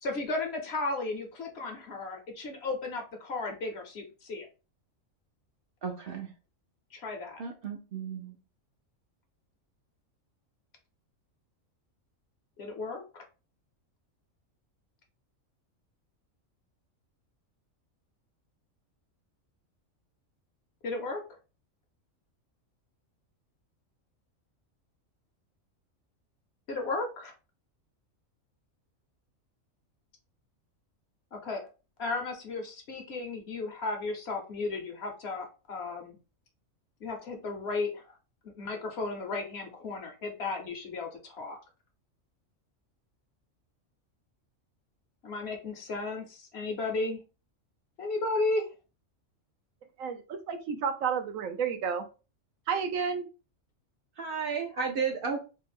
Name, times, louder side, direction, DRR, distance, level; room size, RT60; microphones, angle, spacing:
voice 1, 0.0-4.5 6.9-7.4 12.6-13.2 20.8-21.2 26.7-27.3 31.3-31.6 32.0-36.2 37.0-38.1 38.4-41.6 45.2-47.2 48.0-48.6, left 3 dB, 60° left, 3 dB, 0.9 m, -34 dB
voice 2, 5.8-6.3 7.4-8.3 54.2-55.4, right 5 dB, 60° right, 2 dB, 0.6 m, -33 dB
voice 3, 50.0-52.0 52.7-53.3, right 6 dB, 80° right, 7 dB, 1.0 m, -31 dB
3.3 x 2.0 x 3.3 m, 0.32 s
omnidirectional pair, 1.4 m